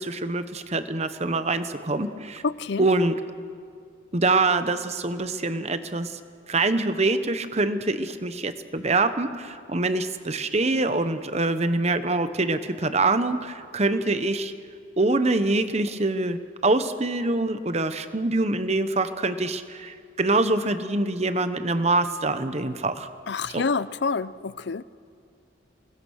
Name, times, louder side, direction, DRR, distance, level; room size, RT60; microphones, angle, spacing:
voice 1, 0.0-2.4 2.8-3.2 4.1-6.2 6.5-14.5 15.0-23.1 23.5-23.6, right 2 dB, 35° right, 10 dB, 1.0 m, -25 dB
voice 2, 2.4-2.8 23.3-24.8, left 4 dB, 60° left, 17 dB, 0.5 m, -27 dB
28.0 x 21.0 x 6.5 m, 2.2 s
head